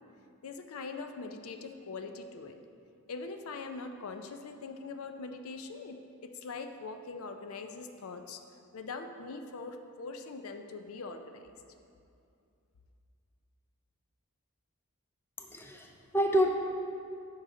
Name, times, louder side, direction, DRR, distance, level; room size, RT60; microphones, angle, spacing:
voice 1, 0.4-2.6 3.1-6.0 6.2-8.4 8.7-11.5, left 4 dB, 75° left, 7 dB, 0.5 m, -42 dB
voice 2, 15.4-16.5, equal, 10° left, 2 dB, 0.5 m, -28 dB
9.8 x 5.6 x 3.7 m, 2.5 s
head